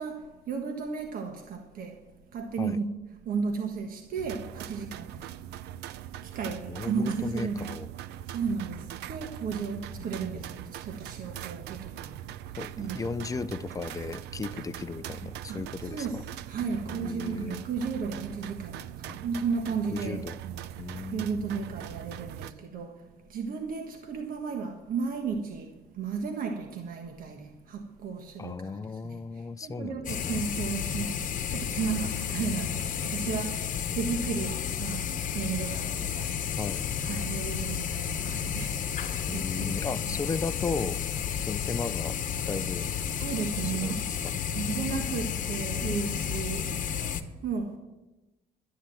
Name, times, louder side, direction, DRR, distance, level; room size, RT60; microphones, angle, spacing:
voice 1, 0.0-2.1 2.3-3.0 3.2-5.4 6.2-7.7 8.3-13.1 15.5-36.4 37.0-38.9 39.3-39.7 43.2-44.1 44.5-47.8, right 5 dB, 55° right, 1.4 m, -34 dB
sound 1, 4.2-22.5, right 12 dB, 85° right, 0.6 m, -41 dB
voice 2, 6.7-7.9 9.9-10.3 12.6-16.2 16.8-17.6 19.1-19.2 19.9-20.4 20.8-21.5 28.4-30.4 36.6-36.8 39.3-41.0 41.5-42.2 42.5-42.9 43.6-44.3, left 4 dB, 20° left, 0.6 m, -36 dB
sound 2, 30.0-47.2, left 8 dB, 50° left, 1.1 m, -32 dB
12.0 x 10.0 x 7.6 m
cardioid pair, 110°, 17 cm